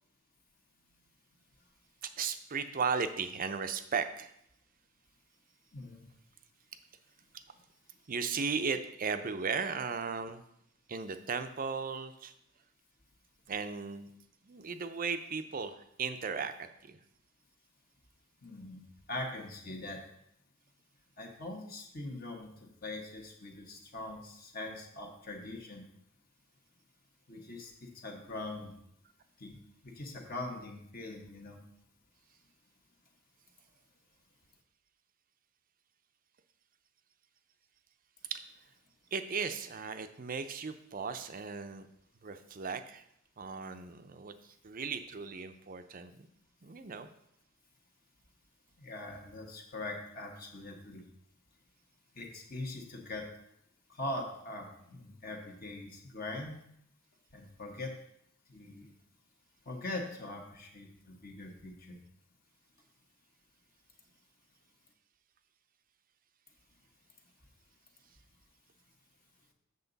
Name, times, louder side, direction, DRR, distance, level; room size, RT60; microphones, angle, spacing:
voice 1, 2.0-4.3 7.3-7.4 8.1-10.4 10.9-12.3 13.5-14.1 14.4-17.0 38.3-38.4 39.1-41.9 42.2-43.0 43.4-46.3 46.6-47.1, right 5 dB, 40° right, 9 dB, 0.6 m, -36 dB
voice 2, 5.7-6.1 18.4-20.0 21.2-22.5 22.8-25.8 27.3-28.7 29.4-31.6 48.8-51.0 52.1-53.3 53.9-56.6 57.3-57.9 58.5-58.9 59.7-62.0, left 2 dB, 45° left, 1 dB, 1.3 m, -42 dB
7.9 x 6.8 x 4.0 m, 0.75 s
head